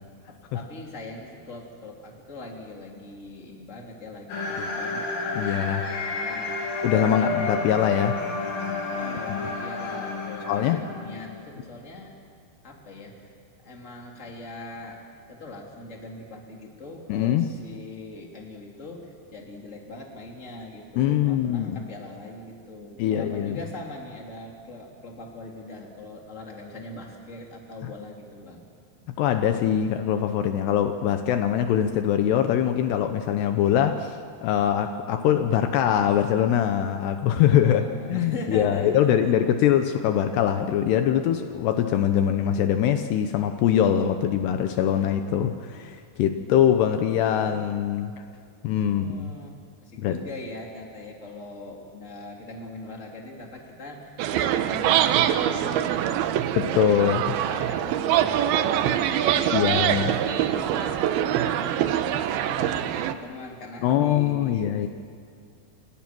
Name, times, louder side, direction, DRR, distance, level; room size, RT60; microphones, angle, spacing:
voice 1, 0.3-5.1 5.8-6.7 7.0-7.5 8.9-12.1 12.6-13.3 13.6-15.0 15.3-28.6 37.5-39.4 48.8-49.5 49.8-56.6 57.2-61.1 61.3-64.9, left 2 dB, 20° left, 0 dB, 3.1 m, -41 dB
sound 1, 4.3-11.4, left 3 dB, 55° left, 3.7 m, -30 dB
voice 2, 5.3-5.9 6.8-8.2 10.5-10.8 17.1-17.5 21.0-21.8 23.0-23.6 29.2-48.1 48.6-49.3 50.0-50.2 56.6-57.3 59.5-60.1 63.8-64.9, left 10 dB, 75° left, 7 dB, 2.9 m, -23 dB
sound 2, 54.2-63.1, right 11 dB, 75° right, 2.5 m, -24 dB
29.5 x 27.0 x 6.2 m, 2.2 s
omnidirectional pair, 5.1 m